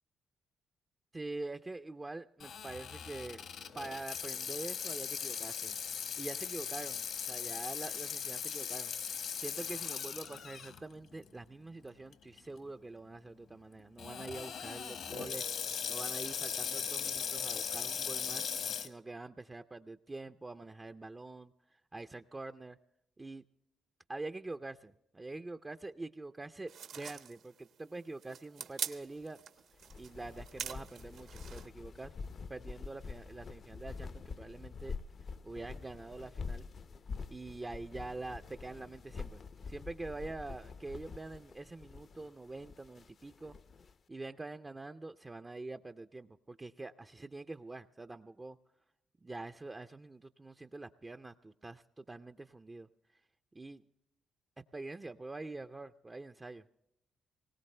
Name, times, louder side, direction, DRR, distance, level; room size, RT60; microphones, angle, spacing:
voice 1, 1.1-3.4 3.7-5.8 6.2-8.9 9.4-15.6 15.9-18.5 18.8-22.8 23.2-23.4 24.1-29.4 30.0-32.1 32.5-35.0 35.4-36.7 37.3-43.6 44.1-48.6 49.2-52.9 53.5-53.8 54.7-56.6, right 2 dB, 20° right, 7 dB, 0.4 m, -45 dB
Water tap faucet / Sink (filling or washing), 2.4-10.8 11.3-11.4 12.1-12.4 14.0-18.9, left 7 dB, 70° left, 1.3 m, -39 dB
sound 1, 26.7-31.7, right 7 dB, 70° right, 1.0 m, -44 dB
sound 2, 29.7-43.9, left 5 dB, 50° left, 0.6 m, -46 dB
20.5 x 18.0 x 3.3 m, 0.82 s
cardioid pair, 90°, 0 cm